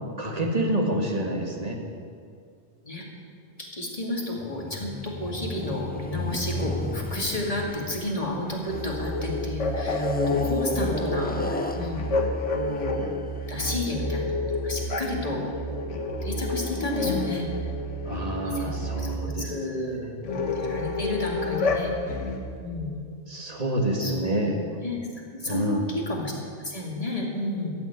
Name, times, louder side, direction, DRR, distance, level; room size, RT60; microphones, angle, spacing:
voice 1, 0.2-1.8 18.1-19.5 20.0-20.4 23.3-24.6 25.5-25.9, right 1 dB, 35° right, 2 dB, 1.8 m, -28 dB
voice 2, 3.6-12.0 12.5-13.0 13.5-17.5 18.4-22.2 22.6-22.9 24.0-24.2 24.8-25.0 25.4-27.7, left 1 dB, 30° left, -1 dB, 2.5 m, -32 dB
sound 1, 4.4-9.1 9.8-13.2, left 2 dB, 15° left, 0.4 m, -33 dB
sound 2, 8.7-19.2 20.2-22.5, left 2 dB, 85° left, 1.6 m, -29 dB
14.0 x 7.1 x 9.9 m, 2.2 s
omnidirectional pair, 1.2 m